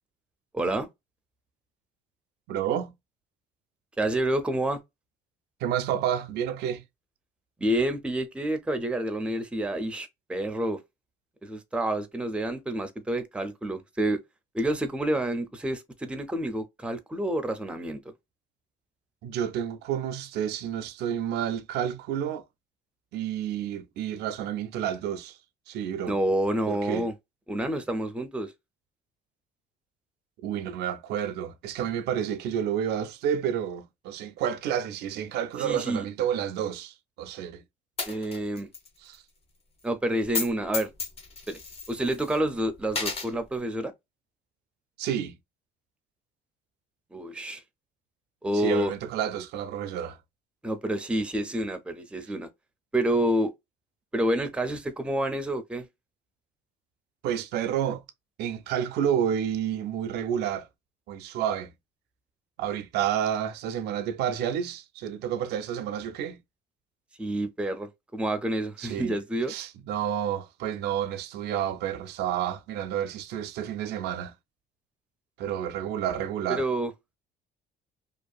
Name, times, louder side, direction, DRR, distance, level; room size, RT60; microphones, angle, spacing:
voice 1, 0.5-0.9 4.0-4.8 7.6-10.8 11.4-14.2 14.5-18.0 26.1-27.1 27.5-28.5 35.6-36.0 38.1-38.7 39.8-40.9 41.5-41.6 41.9-43.9 47.1-47.6 48.4-48.9 50.6-52.5 52.9-53.5 54.1-55.9 67.2-69.5 76.5-76.9, right 1 dB, 5° right, 0.5 m, -28 dB
voice 2, 2.5-2.9 5.6-6.8 19.2-22.4 23.1-25.4 25.7-26.1 26.7-27.1 30.4-37.6 39.0-39.2 45.0-45.4 48.5-50.2 57.2-58.0 58.4-60.7 61.1-61.7 62.6-66.4 68.8-69.2 69.5-74.3 75.4-76.6, right 9 dB, 75° right, 0.4 m, -30 dB
Coin (dropping), 38.0-38.9 39.1-39.2 40.2-40.5 40.7-42.4 42.9-43.3, left 4 dB, 35° left, 0.9 m, -32 dB
2.6 x 2.4 x 2.3 m
cardioid pair, 110°, 17 cm